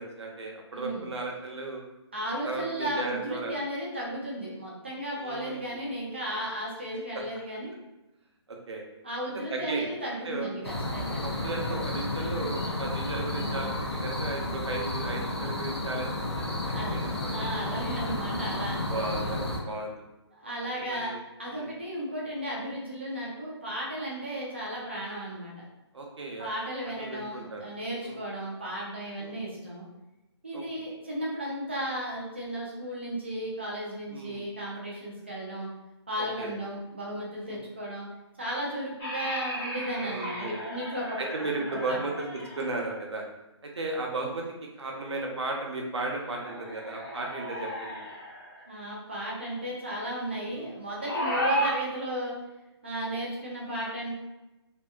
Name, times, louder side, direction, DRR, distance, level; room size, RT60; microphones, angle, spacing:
voice 1, 0.0-1.8 2.4-3.6 5.2-5.8 8.7-8.8 9.5-9.9 10.2-10.5 11.1-13.7 14.0-17.3 18.9-20.0 20.9-21.2 21.5-21.7 25.9-26.5 26.8-27.6 28.0-28.2 29.2-29.4 30.5-30.6 34.1-34.4 36.2-36.5 37.5-37.6 40.0-40.7 41.2-42.3 42.6-43.2 43.6-44.4 44.8-48.0 50.5-50.7, right 2 dB, 70° right, 0 dB, 0.8 m, -35 dB
voice 2, 0.7-1.1 2.1-7.7 9.0-11.2 16.7-17.0 17.3-19.3 20.3-21.1 21.4-25.5 26.4-29.9 30.4-35.7 36.1-38.1 38.4-41.1 41.9-42.0 48.7-52.3 52.8-54.2, right 1 dB, 25° right, -4 dB, 0.5 m, -34 dB
sound 1, 10.6-19.6, left 1 dB, 60° left, 0.6 m, -32 dB
sound 2, 39.0-43.1 46.0-48.6 51.0-51.8, equal, 10° left, 0.8 m, -34 dB
2.8 x 2.5 x 2.3 m, 0.99 s
hypercardioid pair, 180°, 15 cm